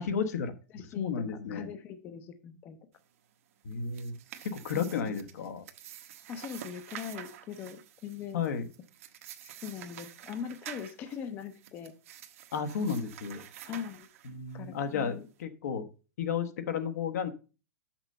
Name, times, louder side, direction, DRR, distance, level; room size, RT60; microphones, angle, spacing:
voice 1, 0.0-0.5 0.9-1.7 3.6-4.1 4.4-5.6 8.3-8.6 12.5-13.4 14.2-15.9 16.2-17.3, left 6 dB, 75° left, 7 dB, 1.2 m, -32 dB
voice 2, 0.7-2.8 4.7-5.1 6.3-8.4 9.6-12.0 13.6-14.1 14.5-15.3, left 8 dB, 20° left, 9 dB, 0.6 m, -41 dB
sound 1, 3.7-14.6, right 11 dB, 55° right, 0.9 m, -48 dB
6.6 x 6.0 x 5.4 m, 0.34 s
supercardioid pair, 170°, 9 cm